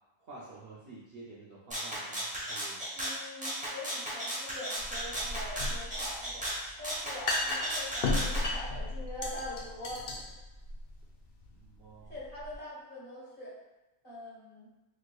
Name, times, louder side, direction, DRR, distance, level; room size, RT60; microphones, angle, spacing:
voice 1, 0.2-2.8 11.5-12.1, right 3 dB, 60° right, -6 dB, 0.7 m, -50 dB
Rattle (instrument), 1.7-8.5, right 1 dB, 10° right, 0.6 m, -35 dB
voice 2, 2.9-6.5 6.8-10.1 12.1-13.5 14.0-14.7, left 1 dB, 40° left, -9 dB, 1.2 m, -44 dB
sound 1, 4.8-12.5, left 2 dB, 65° left, 0.7 m, -36 dB
3.4 x 3.2 x 2.2 m, 1.0 s
omnidirectional pair, 1.4 m